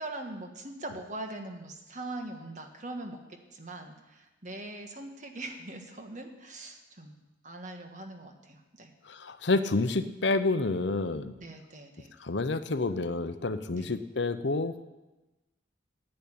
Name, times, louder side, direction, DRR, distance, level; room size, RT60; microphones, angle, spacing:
voice 1, 0.0-3.2 3.5-7.1 7.4-8.9 11.4-12.1 13.7-13.9, right 2 dB, 40° right, 5 dB, 1.5 m, -41 dB
voice 2, 9.1-11.3 12.2-14.7, left 3 dB, 70° left, 11 dB, 0.8 m, -29 dB
10.5 x 8.9 x 8.8 m, 1.1 s
head